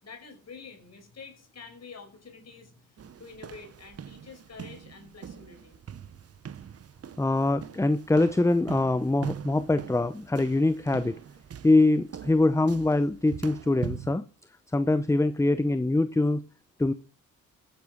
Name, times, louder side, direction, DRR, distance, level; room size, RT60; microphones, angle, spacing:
voice 1, 0.0-5.8, left 5 dB, 50° left, 4 dB, 5.4 m, -48 dB
sound 1, 3.0-14.2, right 8 dB, 45° right, 0.9 m, -42 dB
voice 2, 7.2-11.2 11.6-14.2 14.7-16.4 16.8-16.9, left 2 dB, 10° left, 13 dB, 0.8 m, -23 dB
14.0 x 10.0 x 6.4 m, 0.38 s
cardioid pair, 75°, 33 cm